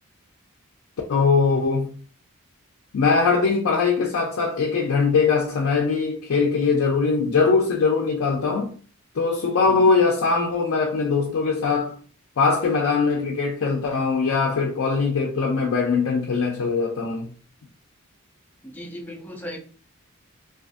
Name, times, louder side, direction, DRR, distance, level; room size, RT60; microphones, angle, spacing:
voice 1, 1.1-1.9 2.9-8.7 9.2-11.9 12.4-17.3, left 4 dB, 65° left, 0.4 m, -21 dB
voice 2, 18.6-19.6, equal, 10° left, 0.5 m, -37 dB
2.4 x 2.4 x 2.5 m
head